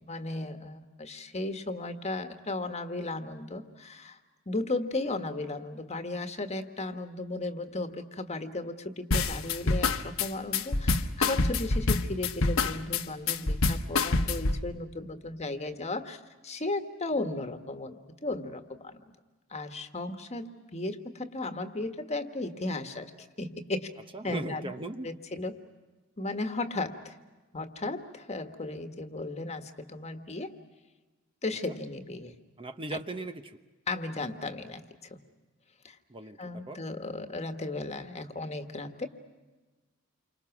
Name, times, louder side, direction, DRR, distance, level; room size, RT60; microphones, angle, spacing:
voice 1, 0.0-4.2 4.5-19.1 19.5-23.9 24.2-24.7 25.0-25.6 26.2-27.2 27.5-30.5 31.4-32.4 32.9-33.0 33.9-35.2 35.8-36.0 36.4-39.1, left 2 dB, 30° left, 7 dB, 1.5 m, -35 dB
sound 1, 9.1-14.6, left 3 dB, 75° left, 1.3 m, -26 dB
voice 2, 24.1-25.1 31.7-31.8 32.6-33.6 36.1-36.8, right 2 dB, 25° right, 7 dB, 0.9 m, -38 dB
29.0 x 25.0 x 6.0 m, 1.2 s
head